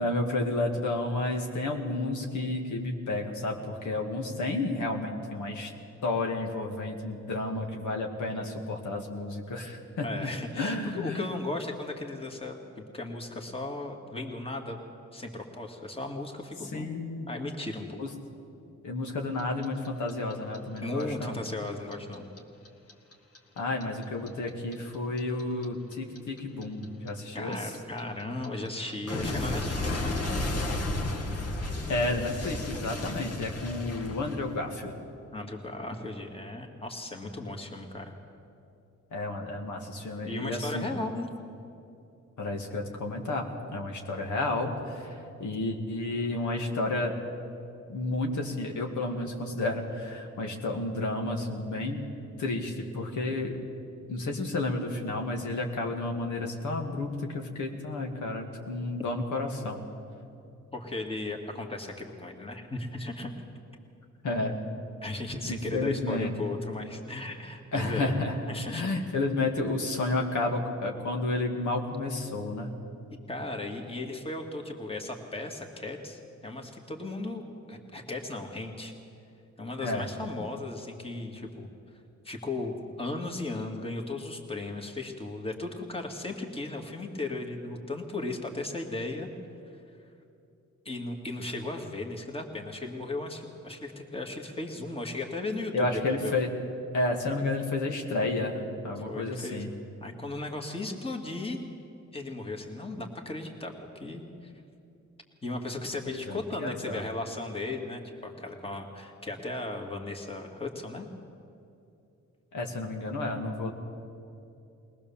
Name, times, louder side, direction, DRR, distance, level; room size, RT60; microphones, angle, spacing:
voice 1, 0.0-5.7 6.0-10.1 10.5-11.3 16.7-17.3 18.0-18.1 18.8-21.4 23.6-27.7 31.9-34.9 39.1-40.9 42.4-47.1 47.9-52.0 52.4-53.6 54.1-59.8 64.2-64.6 65.5-66.3 67.7-68.4 68.7-72.7 79.8-80.1 95.7-96.5 96.9-99.7 106.1-107.0 112.5-113.7, left 2 dB, 80° left, 2 dB, 2.4 m, -31 dB
voice 2, 10.0-12.6 12.9-14.8 15.1-16.9 17.3-18.0 20.8-22.3 27.3-30.2 35.3-38.1 40.2-41.3 60.7-63.3 65.0-68.1 68.5-68.9 73.3-78.9 79.6-81.7 82.2-89.3 90.9-96.3 99.0-99.6 100.0-101.6 102.1-104.5 105.4-111.1, left 2 dB, 20° left, 2 dB, 2.3 m, -36 dB
Clock, 19.4-22.4 22.7-25.6 25.9-34.8, left 2 dB, 55° left, 2.2 m, -33 dB
22.0 x 18.5 x 7.2 m, 2.6 s
cardioid pair, 105°, 30 cm